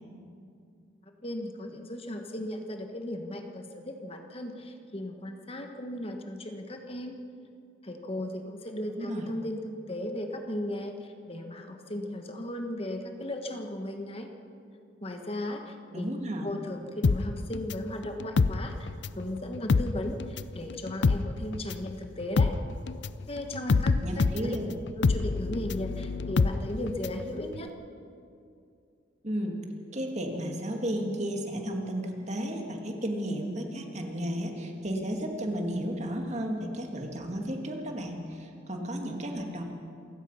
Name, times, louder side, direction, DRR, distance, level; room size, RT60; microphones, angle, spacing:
voice 1, 1.2-7.2 7.8-10.9 11.3-14.3 15.0-16.1 16.4-18.9 19.2-22.6 23.3-24.6 25.0-27.7, left 1 dB, 30° left, 4 dB, 1.4 m, -36 dB
voice 2, 9.0-9.3 15.9-16.5 24.0-24.7 29.2-29.6 29.9-39.6, equal, 40° right, 2 dB, 2.3 m, -33 dB
sound 1, 17.0-19.3 19.5-27.2 27.5-27.6, left 4 dB, 70° left, 0.5 m, -26 dB
27.5 x 16.5 x 5.7 m, 2.5 s
head